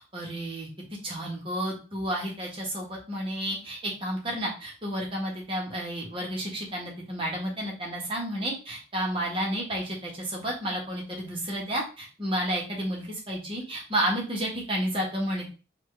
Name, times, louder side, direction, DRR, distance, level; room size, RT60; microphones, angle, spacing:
voice 1, 0.1-0.7 1.0-15.5, right 1 dB, 30° right, -3 dB, 1.4 m, -31 dB
4.3 x 2.5 x 3.2 m, 0.33 s
head